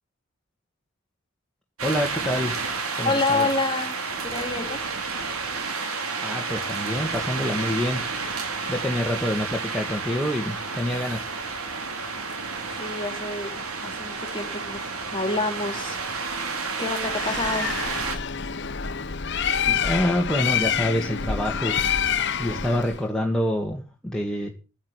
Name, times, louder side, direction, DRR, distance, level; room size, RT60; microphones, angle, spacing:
voice 1, 1.8-2.6 3.0-3.5 6.2-8.0 8.7-11.3 19.7-21.7 22.4-24.5, left 1 dB, 5° left, -1 dB, 2.1 m, -26 dB
sound 1, 1.8-18.2, right 4 dB, 90° right, 4.5 m, -31 dB
voice 2, 3.0-4.0 4.2-4.8 12.8-13.5 13.8-14.8 15.1-16.3 16.8-17.7, left 3 dB, 20° left, 6 dB, 3.7 m, -27 dB
Bird, 17.0-23.0, left 7 dB, 55° left, 1.0 m, -27 dB
15.5 x 9.3 x 8.3 m, 0.34 s
head